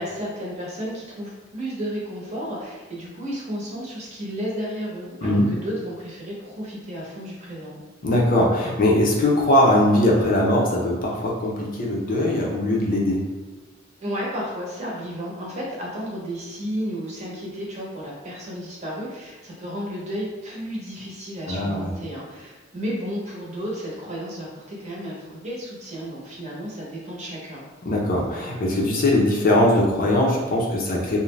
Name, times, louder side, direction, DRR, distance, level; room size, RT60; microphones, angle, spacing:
voice 1, 0.0-7.8 14.0-27.6, equal, 35° right, -5 dB, 0.8 m, -32 dB
voice 2, 8.0-13.2 21.5-21.9 27.9-31.2, left 1 dB, 45° left, -2 dB, 0.5 m, -20 dB
2.5 x 2.1 x 3.1 m, 1.2 s
head